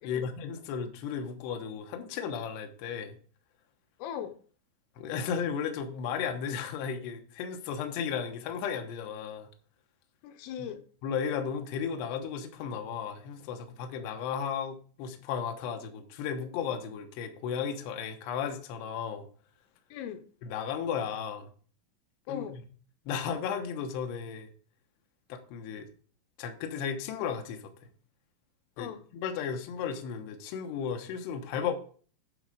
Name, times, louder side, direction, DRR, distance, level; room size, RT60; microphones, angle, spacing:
voice 1, 0.0-3.2 5.0-9.5 11.0-19.3 20.4-21.5 22.3-22.4 23.1-24.5 25.3-25.9 26.4-27.9 28.8-31.7, left 7 dB, 75° left, 4 dB, 2.9 m, -34 dB
voice 2, 4.0-4.4 10.2-10.8 19.9-20.3 22.3-22.6 28.8-29.1, left 9 dB, 90° left, 8 dB, 3.4 m, -39 dB
11.5 x 4.7 x 4.8 m, 0.43 s
omnidirectional pair, 5.7 m